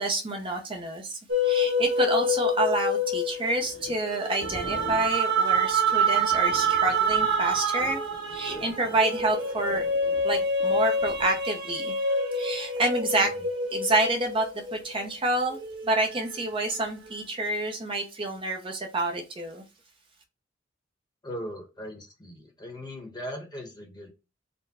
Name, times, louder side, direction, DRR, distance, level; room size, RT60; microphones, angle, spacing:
voice 1, 0.0-8.0 8.3-9.8 10.2-11.9 12.3-13.3 13.7-15.6 15.8-19.6, right 2 dB, 25° right, 2 dB, 0.6 m, -28 dB
sound 1, 1.3-15.0 15.5-17.1, right 1 dB, 65° right, 1.3 m, -27 dB
sound 2, 3.2-11.4, left 1 dB, 85° left, 1.3 m, -45 dB
voice 2, 21.2-24.1, equal, 20° left, 2 dB, 1.0 m, -39 dB
4.3 x 2.1 x 4.1 m, 0.29 s
head